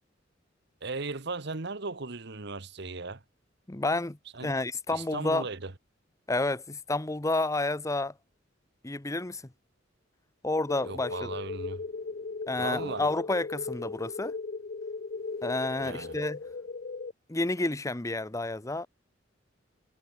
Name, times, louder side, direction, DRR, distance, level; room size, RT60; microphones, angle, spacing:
voice 1, 0.8-3.2 4.3-4.5 4.9-5.7 10.8-11.8 12.6-13.0 15.8-16.2, right 3 dB, 60° right, 1.3 m, -37 dB
voice 2, 3.7-4.2 4.4-5.5 6.3-8.1 8.8-9.4 10.4-11.3 12.5-14.3 15.4-16.4 17.3-18.9, left 2 dB, 15° left, 0.8 m, -30 dB
sound 1, 10.7-17.1, left 4 dB, 45° left, 0.6 m, -37 dB
head